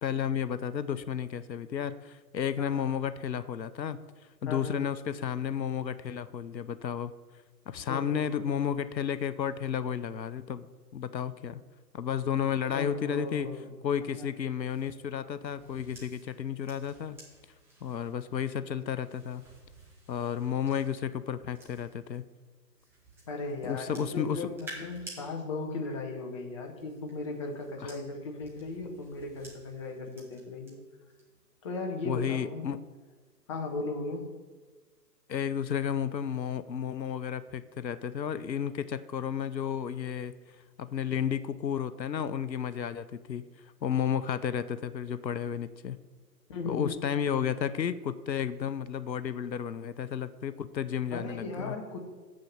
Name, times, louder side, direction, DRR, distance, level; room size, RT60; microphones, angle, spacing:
voice 1, 0.0-4.0 4.4-7.1 7.7-10.7 10.9-11.6 11.9-13.5 13.8-17.2 17.8-19.5 20.1-22.3 23.6-24.5 27.8-27.9 32.0-32.8 35.3-40.3 40.8-43.4 43.8-46.0 46.6-51.8, left 8 dB, 85° left, 14 dB, 0.7 m, -32 dB
voice 2, 2.6-2.9 4.5-4.8 7.9-8.5 12.7-13.7 14.2-14.3 23.3-30.8 31.6-32.6 33.5-34.3 46.5-47.1 51.1-52.0, left 3 dB, 20° left, 2 dB, 0.7 m, -37 dB
sound 1, 14.6-22.2 22.8-25.2 26.5-30.7 31.1-31.4, right 2 dB, 5° right, 1.2 m, -53 dB
7.4 x 6.3 x 7.2 m, 1.3 s
figure-of-eight pair, 135°, 50 cm